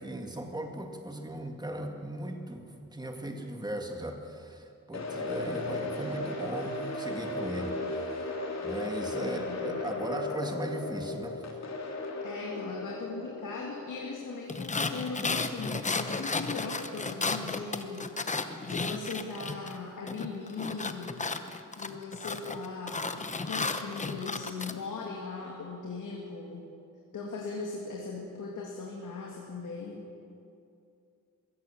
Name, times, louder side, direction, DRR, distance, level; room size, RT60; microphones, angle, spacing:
voice 1, 0.0-7.8 8.1-8.3 8.6-11.5, right 1 dB, 15° right, 3 dB, 2.1 m, -38 dB
sound 1, 4.9-15.0, left 2 dB, 55° left, 3.1 m, -36 dB
voice 2, 9.2-9.8 12.2-18.1 18.6-21.2 21.7-26.7 27.1-30.0, left 4 dB, 70° left, -2 dB, 2.7 m, -39 dB
sound 2, 14.5-19.8 20.1-24.7, left 3 dB, 25° left, 1.0 m, -33 dB
22.0 x 16.5 x 7.2 m, 2.6 s
wide cardioid pair, 130°, 32 cm